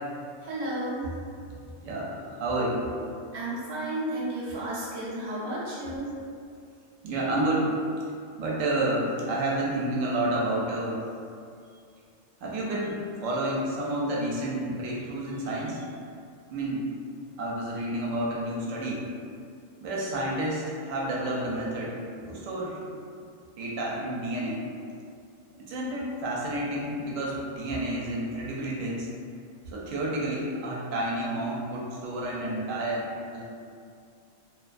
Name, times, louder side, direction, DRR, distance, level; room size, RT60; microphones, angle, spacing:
voice 1, 0.4-1.1 3.3-6.1, right 1 dB, 40° right, -9 dB, 0.4 m, -32 dB
voice 2, 1.8-2.8 7.0-7.7 8.4-11.0 12.4-15.9 16.5-16.8 17.4-19.1 19.8-22.0 22.3-22.8 23.6-24.6 25.6-29.1 29.7-33.0 33.3-33.4, right 1 dB, 75° right, -4 dB, 0.9 m, -30 dB
2.4 x 2.2 x 2.4 m, 2.3 s
omnidirectional pair, 1.3 m